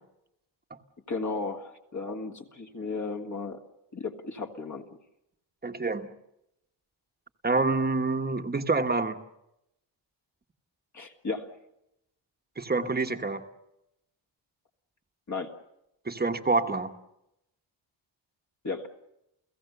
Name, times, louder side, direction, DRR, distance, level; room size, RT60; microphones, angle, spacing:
voice 1, 1.1-3.6 3.9-4.9 10.9-11.5 15.3-15.5 18.6-18.9, left 3 dB, 35° left, 3 dB, 1.7 m, -34 dB
voice 2, 5.6-6.1 7.4-9.2 12.6-13.4 16.0-16.9, right 3 dB, 20° right, 6 dB, 1.2 m, -27 dB
30.0 x 16.5 x 6.8 m, 0.85 s
wide cardioid pair, 150°, 47 cm